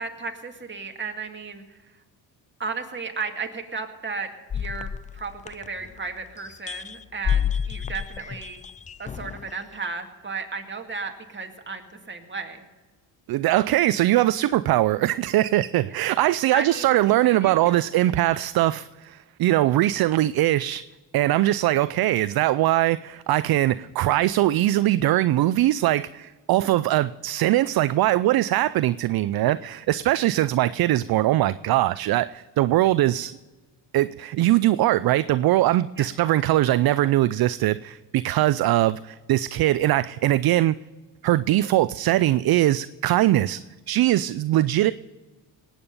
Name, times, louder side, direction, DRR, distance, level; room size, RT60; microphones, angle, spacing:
voice 1, 0.0-2.0 2.6-8.6 9.0-12.7 15.9-16.0 16.5-17.9 29.4-29.5 36.0-36.1, right 4 dB, 25° right, 3 dB, 2.1 m, -34 dB
sound 1, 4.5-6.1 6.4-9.5, left 8 dB, 20° left, 0.3 m, -29 dB
voice 2, 13.3-20.8 21.1-33.4 33.9-40.7 41.2-43.6 43.9-44.9, right 15 dB, 55° right, 16 dB, 0.5 m, -21 dB
19.0 x 8.9 x 5.4 m, 1.3 s
cardioid pair, 90°, 46 cm